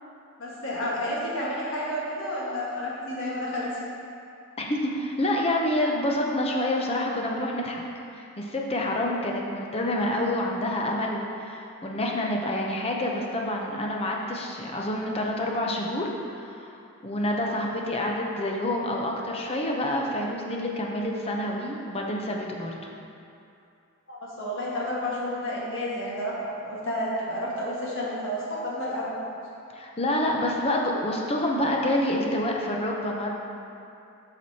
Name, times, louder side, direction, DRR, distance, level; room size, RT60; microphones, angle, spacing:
voice 1, 0.4-3.7 24.1-29.2, left 1 dB, 60° left, -6 dB, 1.5 m, -31 dB
voice 2, 4.6-7.8 8.1-22.7 29.7-33.3, left 1 dB, 25° left, 0 dB, 0.6 m, -28 dB
7.4 x 5.9 x 2.8 m, 2.6 s
head